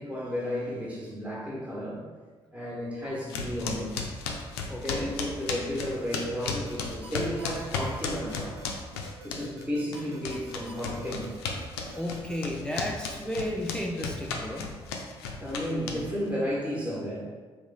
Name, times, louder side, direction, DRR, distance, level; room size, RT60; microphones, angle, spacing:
voice 1, 0.0-2.1 2.5-4.0 4.7-8.6 9.2-11.3 15.4-17.2, equal, 10° right, -6 dB, 1.1 m, -33 dB
sound 1, 3.3-9.7 9.9-16.3, left 5 dB, 70° left, 0.4 m, -34 dB
voice 2, 4.7-5.1 11.9-14.8, left 1 dB, 5° left, 0 dB, 0.4 m, -33 dB
sound 2, 6.7-12.4, right 1 dB, 80° right, 0.4 m, -48 dB
3.4 x 2.6 x 3.3 m, 1.5 s
figure-of-eight pair, 45°, 14 cm